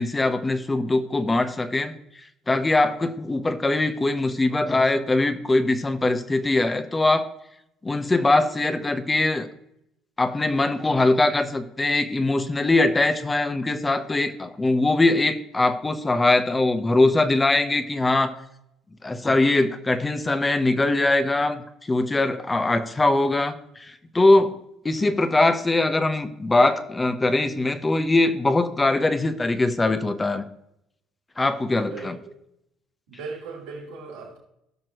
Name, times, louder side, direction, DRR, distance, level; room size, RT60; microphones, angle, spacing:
voice 1, 0.0-1.9 2.5-7.3 7.8-9.5 10.2-18.3 19.0-24.6 24.8-30.4 31.4-32.2, left 2 dB, 20° left, 10 dB, 1.0 m, -22 dB
voice 2, 33.1-34.4, right 4 dB, 80° right, -2 dB, 3.2 m, -37 dB
17.0 x 6.0 x 3.1 m, 0.79 s
supercardioid pair, 70°, 0 cm